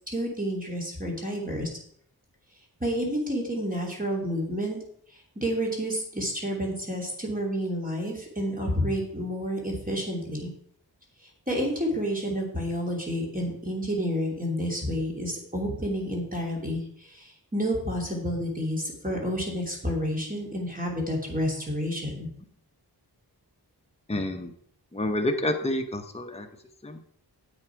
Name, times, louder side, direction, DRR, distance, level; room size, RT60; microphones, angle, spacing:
voice 1, 0.1-1.7 2.8-4.8 5.4-10.5 11.5-16.8 17.1-22.3, equal, 20° right, -2 dB, 3.0 m, -29 dB
voice 2, 24.1-24.5 24.9-26.5 26.8-27.0, left 1 dB, 15° left, 4 dB, 0.9 m, -28 dB
9.8 x 8.0 x 4.6 m, 0.64 s
wide cardioid pair, 105°, 41 cm